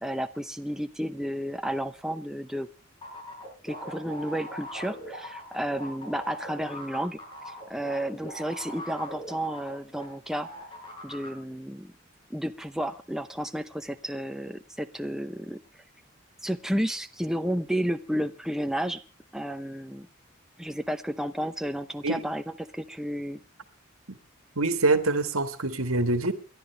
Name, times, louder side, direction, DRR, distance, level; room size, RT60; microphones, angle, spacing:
voice 1, 0.0-2.7 3.6-7.2 7.5-10.5 11.0-11.9 12.3-15.6 16.4-19.0 19.3-20.1 20.6-23.4, equal, ahead, 0.7 m, -32 dB
sound 1, 3.0-10.1 10.3-11.3, equal, 25° left, 5.7 m, -40 dB
voice 2, 24.6-26.3, right 3 dB, 90° right, 1.9 m, -25 dB
28.5 x 12.0 x 3.3 m
head